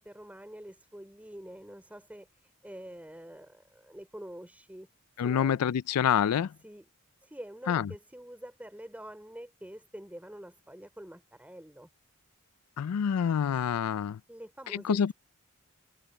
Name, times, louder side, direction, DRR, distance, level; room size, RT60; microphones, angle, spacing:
voice 1, 0.0-4.9 5.2-5.6 6.6-6.9 7.2-11.9 14.3-15.1, equal, 5° right, 5.1 m, -46 dB
voice 2, 5.2-6.5 7.7-7.8 12.8-14.2 14.9-15.1, left 8 dB, 80° left, 0.4 m, -26 dB
head